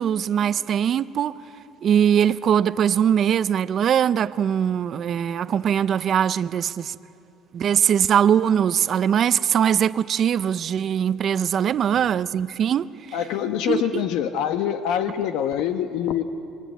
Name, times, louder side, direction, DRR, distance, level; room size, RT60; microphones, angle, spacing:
voice 1, 0.0-1.3 1.8-7.0 7.5-13.2 13.7-13.8, right 9 dB, 35° right, 0.6 m, -21 dB
voice 2, 13.1-16.2, left 9 dB, 75° left, 1.1 m, -25 dB
28.0 x 23.0 x 9.3 m
cardioid pair, 175°, 0 cm